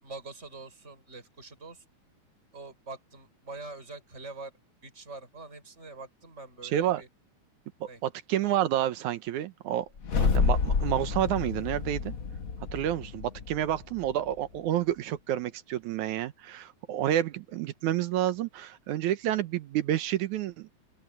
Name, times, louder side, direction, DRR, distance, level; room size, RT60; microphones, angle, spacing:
voice 1, 0.0-1.8 2.5-4.5 4.8-7.1 7.8-8.0, right 3 dB, 20° right, 7.6 m, -44 dB
voice 2, 7.8-9.9 10.2-12.1 12.7-20.7, right 12 dB, 80° right, 2.4 m, -29 dB
sound 1, 10.0-14.3, left 5 dB, 60° left, 0.9 m, -29 dB
open air
omnidirectional pair, 3.5 m